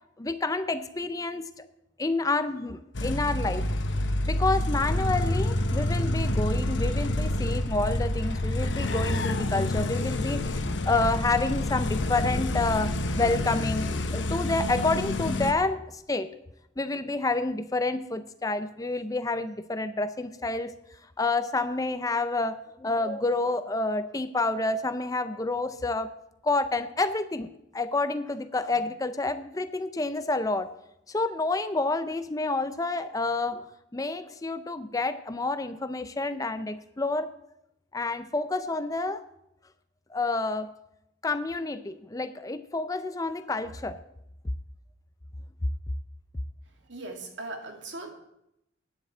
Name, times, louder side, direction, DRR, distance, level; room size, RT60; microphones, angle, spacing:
voice 1, 0.2-1.6 2.0-3.7 4.3-10.4 10.9-16.3 16.8-20.7 21.2-26.1 26.4-30.7 31.1-33.6 33.9-37.3 37.9-39.2 40.1-40.7 41.2-44.0, left 3 dB, 20° left, 11 dB, 0.5 m, -29 dB
sound 1, 2.9-15.5, left 1 dB, 70° left, 1.0 m, -28 dB
voice 2, 46.9-48.1, right 2 dB, 70° right, 2 dB, 2.3 m, -38 dB
9.7 x 7.7 x 8.2 m, 0.82 s
head